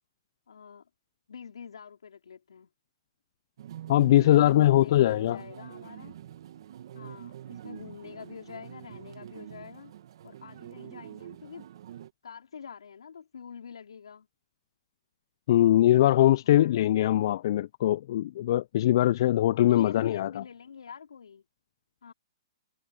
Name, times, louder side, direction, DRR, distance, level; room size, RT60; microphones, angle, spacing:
voice 1, 0.5-0.9 1.3-2.7 4.1-6.2 6.9-9.9 10.2-11.7 12.2-14.3 16.4-16.9 19.7-21.4 22.0-22.1, left 7 dB, 80° left, 4.5 m, -46 dB
sound 1, 3.6-12.1, right 11 dB, 60° right, 1.7 m, -45 dB
voice 2, 3.9-5.4 15.5-20.4, left 13 dB, 50° left, 0.4 m, -22 dB
hypercardioid pair, 145°, 3 cm